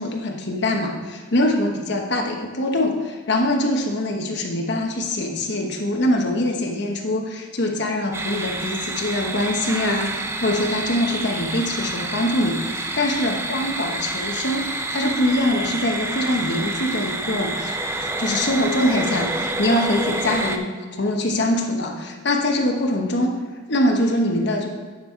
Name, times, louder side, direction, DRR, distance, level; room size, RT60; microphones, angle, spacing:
voice 1, 0.0-23.4 23.7-24.7, left 1 dB, 60° left, 2 dB, 1.0 m, -23 dB
sound 1, 8.1-20.6, right 2 dB, 15° right, 0.5 m, -28 dB
9.7 x 5.5 x 4.5 m, 1.5 s
head